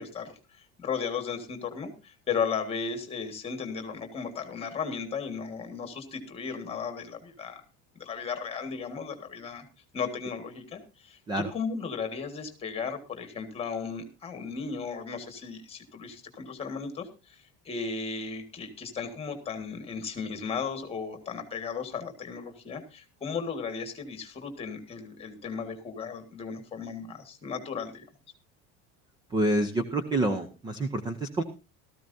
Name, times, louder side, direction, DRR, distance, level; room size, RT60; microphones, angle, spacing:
voice 1, 0.0-7.6 8.0-9.7 9.9-11.2 11.5-28.0, left 5 dB, 15° left, 7 dB, 1.6 m, -35 dB
voice 2, 29.3-31.4, right 1 dB, 15° right, 10 dB, 0.5 m, -27 dB
17.0 x 13.5 x 2.6 m, 0.28 s
cardioid pair, 180°, 33 cm